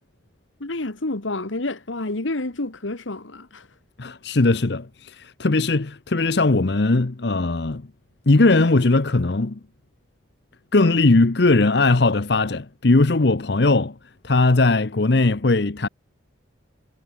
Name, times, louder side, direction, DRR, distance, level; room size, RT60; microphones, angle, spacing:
voice 1, 0.6-3.7, left 2 dB, 80° left, 1.8 m, -29 dB
voice 2, 4.0-7.9 8.3-9.6 10.7-14.0 14.2-15.9, left 2 dB, 60° left, 0.8 m, -19 dB
head